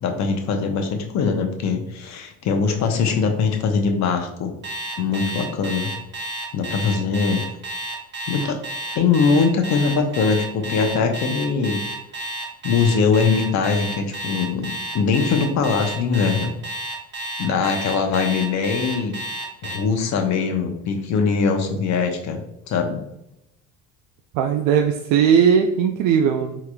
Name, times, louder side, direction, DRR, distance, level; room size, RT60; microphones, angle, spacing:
voice 1, 0.0-4.5 5.0-5.9 6.5-7.4 8.3-8.6 8.9-11.8 12.6-14.7 14.9-16.5 17.4-19.1 19.6-23.0, left 5 dB, 50° left, 4 dB, 0.8 m, -21 dB
Alarm, 4.6-19.8, right 1 dB, 30° right, 1.0 m, -31 dB
voice 2, 24.3-26.6, right 7 dB, 65° right, 3 dB, 0.5 m, -18 dB
3.8 x 3.0 x 2.3 m, 0.82 s
supercardioid pair, 90°, 35 cm